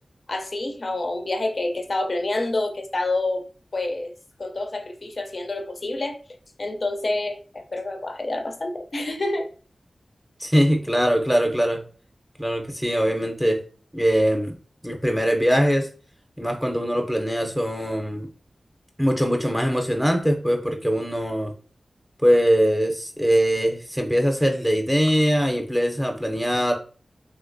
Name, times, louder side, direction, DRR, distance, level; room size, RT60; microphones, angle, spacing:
voice 1, 0.3-3.4 3.7-4.1 4.4-6.2 6.6-9.5, left 2 dB, 60° left, 0.5 m, -27 dB
voice 2, 10.4-11.8 12.4-13.6 13.9-14.5 14.8-15.9 16.4-18.3 19.0-21.5 22.2-26.7, equal, 5° right, 0.6 m, -22 dB
3.0 x 2.8 x 2.6 m
cardioid pair, 50°, 0 cm